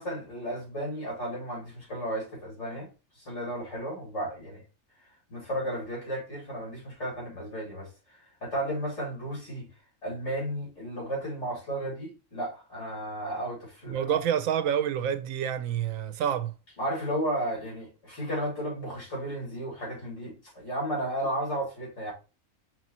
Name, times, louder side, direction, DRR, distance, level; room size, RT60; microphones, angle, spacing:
voice 1, 0.0-2.9 3.2-4.6 5.3-9.7 10.0-14.2 16.8-22.1, right 1 dB, 60° left, 2.3 m, -34 dB
voice 2, 13.9-16.5, right 9 dB, 80° right, 1.0 m, -28 dB
5.4 x 3.1 x 2.8 m
omnidirectional pair, 1.4 m